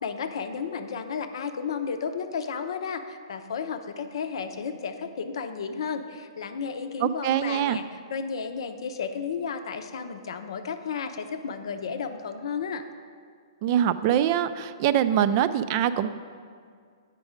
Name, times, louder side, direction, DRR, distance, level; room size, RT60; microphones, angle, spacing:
voice 1, 0.0-12.8, left 6 dB, 70° left, 8 dB, 0.6 m, -33 dB
voice 2, 7.0-7.8 13.6-16.1, right 10 dB, 40° right, 13 dB, 0.3 m, -23 dB
8.2 x 5.2 x 5.0 m, 2.1 s
hypercardioid pair, 135°, 3 cm